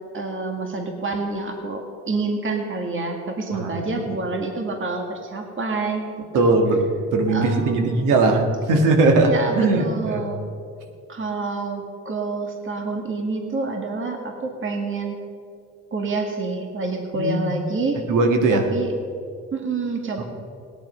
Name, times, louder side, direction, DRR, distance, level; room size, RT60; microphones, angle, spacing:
voice 1, 0.1-6.1 7.3-8.4 9.2-10.4 11.1-15.2 15.9-18.0 18.5-18.9 19.5-20.2, right 3 dB, 40° right, 3 dB, 1.9 m, -27 dB
voice 2, 3.5-4.0 6.3-10.3 17.1-17.5 18.1-18.7 20.2-20.3, right 2 dB, 90° right, 4 dB, 1.7 m, -20 dB
17.5 x 10.0 x 5.6 m, 2.4 s
cardioid pair, 90°, 30 cm